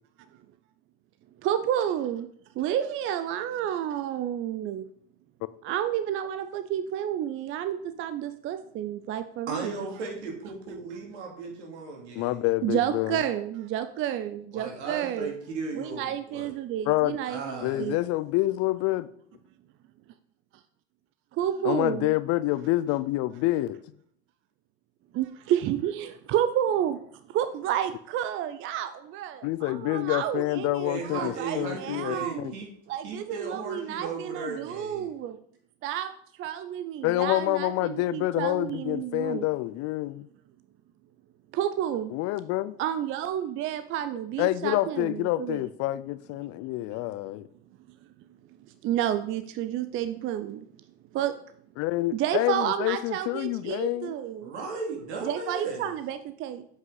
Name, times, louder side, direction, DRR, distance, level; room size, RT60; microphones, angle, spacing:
voice 1, 1.4-2.3 2.6-4.8 5.6-9.9 12.6-15.3 15.7-18.0 21.3-22.1 25.1-27.0 27.3-32.5 32.9-35.4 35.8-36.1 36.4-39.4 41.5-42.1 42.8-45.6 48.8-50.6 51.1-51.3 52.1-54.5 55.2-56.6, right 10 dB, 35° right, 0.5 m, -30 dB
voice 2, 9.5-12.4 14.5-16.5 17.3-17.9 30.8-32.7 33.0-35.1 54.4-55.9, right 4 dB, 75° right, 2.5 m, -36 dB
voice 3, 12.2-13.2 16.9-17.2 17.6-19.1 21.6-23.8 29.4-32.5 37.0-40.3 42.1-42.7 44.4-47.5 51.8-54.1, left 17 dB, 45° left, 0.5 m, -27 dB
7.8 x 5.5 x 3.9 m
hypercardioid pair, 90°, 34 cm